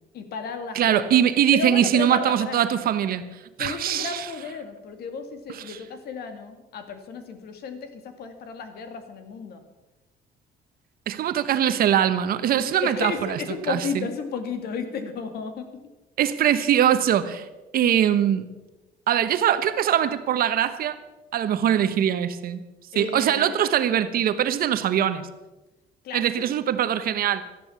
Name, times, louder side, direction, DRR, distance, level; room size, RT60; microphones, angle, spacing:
voice 1, 0.1-1.2 1.5-2.6 3.6-9.6 12.8-15.7 22.9-23.6 26.0-26.3, left 5 dB, 70° left, 2.2 m, -33 dB
voice 2, 0.7-3.2 3.6-4.3 5.5-5.8 11.1-13.4 13.7-14.1 16.2-17.5 17.7-18.5 19.1-21.0 21.3-22.6 22.9-25.3 26.1-27.4, right 10 dB, 60° right, 1.1 m, -22 dB
13.5 x 11.0 x 7.1 m
cardioid pair, 110°, 17 cm